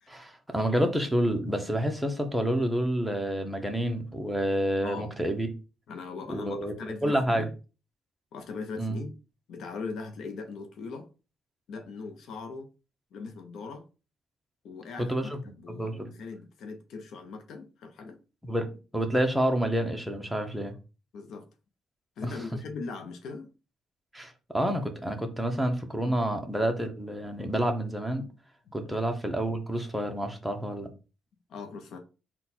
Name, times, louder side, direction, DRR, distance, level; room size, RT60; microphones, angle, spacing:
voice 1, 0.1-5.5 6.3-7.4 8.8-9.0 15.0-15.4 15.7-16.1 18.4-18.7 18.9-20.7 22.2-22.3 24.1-28.2 28.7-30.9, right 1 dB, ahead, 0.8 m, -28 dB
voice 2, 4.8-5.1 5.9-7.5 8.3-9.1 9.5-11.1 11.7-12.7 13.1-13.9 14.6-18.2 21.1-21.5 22.2-23.5 26.1-26.2 28.7-29.0 31.5-32.0, left 4 dB, 75° left, 0.6 m, -40 dB
4.0 x 2.3 x 4.2 m
cardioid pair, 90°, 0 cm